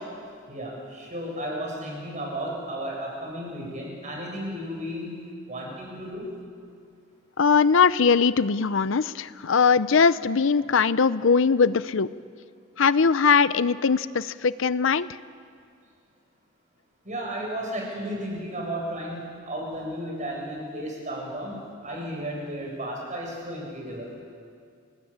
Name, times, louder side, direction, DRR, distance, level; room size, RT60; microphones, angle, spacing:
voice 1, 0.5-5.2 5.5-6.3 17.0-21.5 21.8-24.1, equal, 40° right, -1 dB, 7.8 m, -33 dB
voice 2, 7.4-12.1 12.8-15.1, left 5 dB, 70° left, 16 dB, 0.6 m, -21 dB
29.0 x 19.5 x 8.8 m, 2.2 s
head